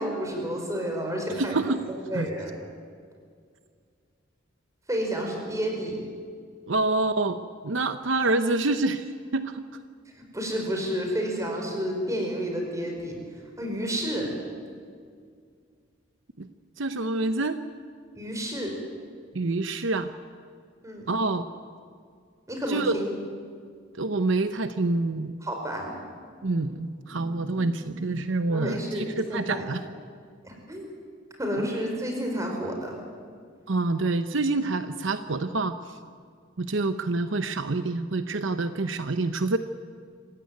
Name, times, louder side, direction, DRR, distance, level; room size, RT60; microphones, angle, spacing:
voice 1, 0.0-1.6 2.1-2.5 4.9-6.0 10.1-13.2 13.6-14.3 18.1-18.8 20.8-21.1 22.5-23.1 25.4-26.0 28.5-29.6 30.4-30.9 31.4-33.0, equal, 15° right, 1 dB, 5.0 m, -30 dB
voice 2, 1.4-1.8 2.1-2.3 6.7-9.6 16.4-16.5 16.8-17.6 19.3-20.1 21.1-21.4 22.7-23.0 23.9-25.4 26.4-29.8 31.6-31.7 33.7-36.0 36.6-39.6, right 2 dB, 70° right, 10 dB, 0.8 m, -27 dB
26.0 x 16.0 x 9.4 m, 2.1 s
head